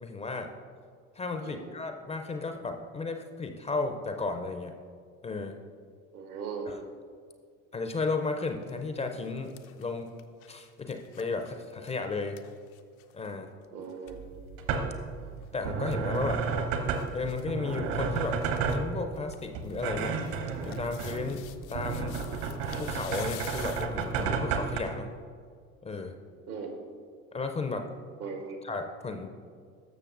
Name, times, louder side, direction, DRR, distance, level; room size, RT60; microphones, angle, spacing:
voice 1, 0.0-0.5 1.2-4.7 5.2-5.6 6.7-6.8 7.7-10.2 10.5-12.4 13.1-13.5 15.5-16.4 17.1-18.4 18.7-20.2 20.6-21.4 21.7-22.2 22.8-25.1 25.8-26.1 27.3-27.9 28.6-29.3, left 3 dB, 15° left, 6 dB, 0.4 m, -34 dB
voice 2, 6.1-6.7 13.7-14.2 26.5-26.8 28.2-28.6, right 5 dB, 80° right, 2 dB, 1.4 m, -38 dB
sound 1, 8.4-8.7 9.1-13.3 13.6-13.7 13.9-14.2 15.4-16.3 16.9-17.4 17.7-17.8 18.1-18.8 19.1-24.3 24.9-25.0, left 12 dB, 75° left, 0.6 m, -49 dB
sound 2, 14.1-24.8, right 5 dB, 55° right, 1.0 m, -32 dB
13.0 x 6.5 x 2.5 m, 2.1 s
figure-of-eight pair, 70°, 43 cm